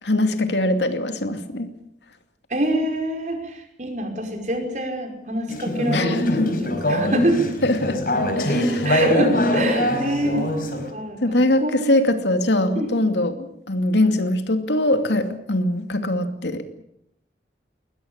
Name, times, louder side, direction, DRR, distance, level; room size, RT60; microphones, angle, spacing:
voice 1, 0.0-1.7 5.9-6.6 7.6-8.0 8.4-8.9 10.3-10.5 11.2-16.7, left 1 dB, 85° left, 8 dB, 2.6 m, -22 dB
voice 2, 2.5-6.3 6.6-7.4 8.8-11.2 11.6-11.8 12.8-12.9, right 1 dB, 40° right, 4 dB, 5.4 m, -25 dB
Conversation / Chatter, 5.5-10.9, left 1 dB, 55° left, 4.9 m, -22 dB
21.5 x 20.5 x 8.8 m, 0.75 s
head